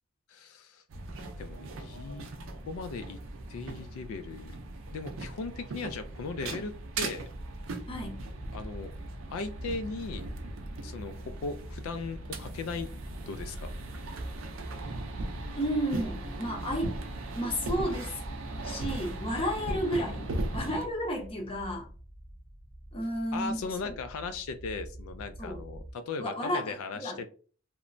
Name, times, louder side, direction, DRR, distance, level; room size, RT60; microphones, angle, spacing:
voice 1, 0.3-0.8 1.4-2.3 2.7-3.2 3.5-4.6 4.9-7.3 8.5-8.9 9.3-10.3 10.8-12.9 13.3-13.7 23.3-27.3, left 4 dB, 80° left, 0.3 m, -38 dB
sound 1, 0.9-20.9, right 2 dB, 70° right, 0.4 m, -38 dB
voice 2, 7.9-8.2 15.6-16.9 17.4-18.2 18.6-21.9 22.9-23.9 25.4-25.6 26.2-27.2, equal, 25° left, 0.6 m, -32 dB
sound 2, 11.3-25.9, right 1 dB, 30° right, 0.8 m, -45 dB
3.0 x 2.1 x 2.5 m
head